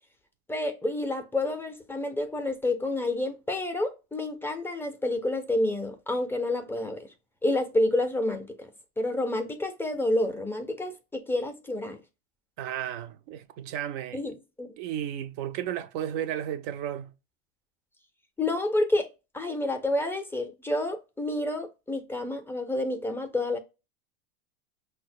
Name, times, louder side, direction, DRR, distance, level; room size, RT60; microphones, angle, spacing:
voice 1, 0.5-7.1 7.4-8.7 9.0-12.0 14.1-14.7 18.4-19.1 19.3-23.6, left 1 dB, 10° left, 0.4 m, -29 dB
voice 2, 12.6-14.2 14.8-17.1, right 10 dB, 60° right, 0.5 m, -33 dB
5.5 x 2.1 x 2.5 m
supercardioid pair, 115°, 29 cm